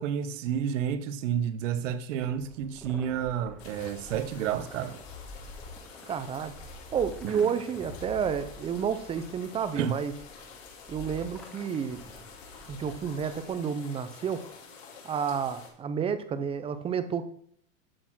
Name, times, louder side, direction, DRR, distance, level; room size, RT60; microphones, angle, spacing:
voice 1, 0.0-5.0 7.3-7.5 9.8-9.9, right 9 dB, 70° right, 1.0 m, -30 dB
sound 1, 2.2-13.6, left 1 dB, 5° left, 1.2 m, -48 dB
sound 2, 3.6-15.7, left 5 dB, 65° left, 4.5 m, -49 dB
voice 2, 6.1-6.5 6.9-10.1 10.9-12.0 12.7-14.5 15.0-17.3, right 7 dB, 15° right, 0.5 m, -30 dB
12.5 x 4.2 x 6.1 m
supercardioid pair, 135°, 39 cm